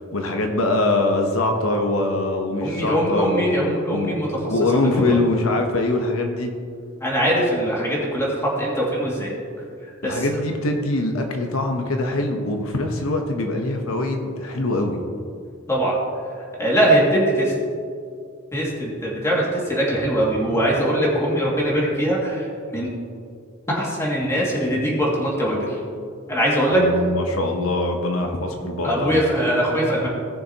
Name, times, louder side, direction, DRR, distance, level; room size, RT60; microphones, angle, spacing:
voice 1, 0.0-3.5 3.9-4.2 4.5-6.5 10.0-15.0 26.7-29.2, left 2 dB, 85° left, 3 dB, 1.0 m, -23 dB
voice 2, 2.6-4.5 4.9-5.2 7.0-9.3 10.0-10.4 15.7-15.9 16.6-17.5 18.5-22.9 23.7-25.8 26.3-27.0 28.8-30.1, right 1 dB, 15° left, -5 dB, 2.3 m, -21 dB
18.0 x 6.8 x 3.0 m, 2.3 s
head